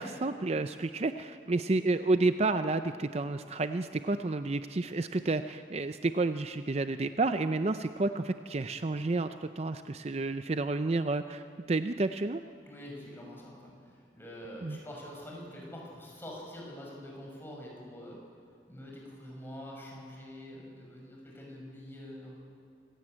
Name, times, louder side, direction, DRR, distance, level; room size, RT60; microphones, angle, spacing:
voice 1, 0.0-12.4 14.6-14.8, right 3 dB, 35° right, 10 dB, 0.5 m, -30 dB
voice 2, 12.7-18.2 18.7-22.4, left 1 dB, 15° left, -2 dB, 5.8 m, -45 dB
25.5 x 16.0 x 8.9 m, 2.3 s
head